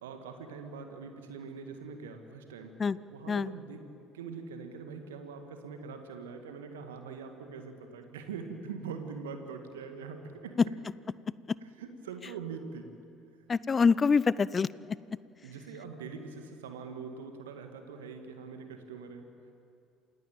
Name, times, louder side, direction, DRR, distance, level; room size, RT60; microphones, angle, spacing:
voice 1, 0.0-2.7 3.1-3.8 4.1-10.6 11.6-12.9 15.4-19.5, right 5 dB, 75° right, 6 dB, 2.0 m, -43 dB
voice 2, 13.5-14.7, left 5 dB, 30° left, 20 dB, 0.6 m, -25 dB
28.0 x 17.5 x 9.1 m, 2.5 s
figure-of-eight pair, 55°, 0 cm